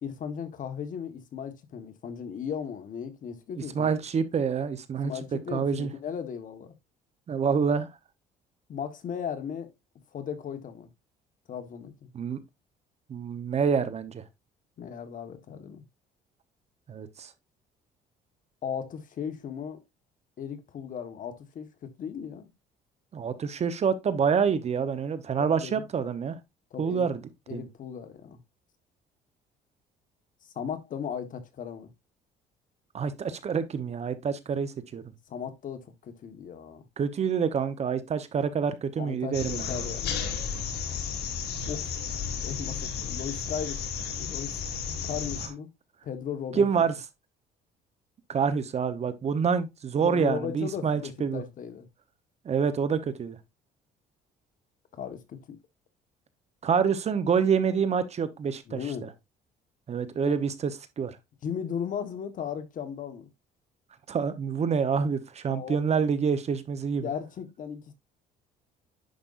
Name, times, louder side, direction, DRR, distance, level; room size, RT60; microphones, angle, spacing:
voice 1, 0.0-3.9 5.0-6.7 8.7-9.7 10.1-10.9 11.5-11.9 14.8-15.8 18.6-19.8 20.4-21.7 22.0-22.5 25.5-25.8 26.7-27.1 27.5-28.4 30.4-31.9 35.3-36.8 39.0-40.4 41.7-42.1 42.4-43.8 44.1-44.6 45.0-45.7 46.0-46.8 50.0-51.9 54.9-55.6 58.7-59.1 60.2-60.3 61.4-63.3 65.5-65.9 67.0-67.9, left 7 dB, 50° left, 1.4 m, -36 dB
voice 2, 3.5-5.1 5.5-5.9 7.3-7.9 12.1-12.4 13.1-14.2 16.9-17.3 23.1-26.4 26.8-27.2 27.5-27.7 32.9-35.0 37.0-39.7 46.6-46.9 48.3-51.4 52.4-53.4 56.6-59.1 59.9-60.7 61.0-61.2 64.1-67.1, right 6 dB, 40° right, 1.0 m, -27 dB
sound 1, 39.3-45.5, left 6 dB, 75° left, 2.0 m, -33 dB
10.5 x 5.4 x 2.6 m
cardioid pair, 110°, 17 cm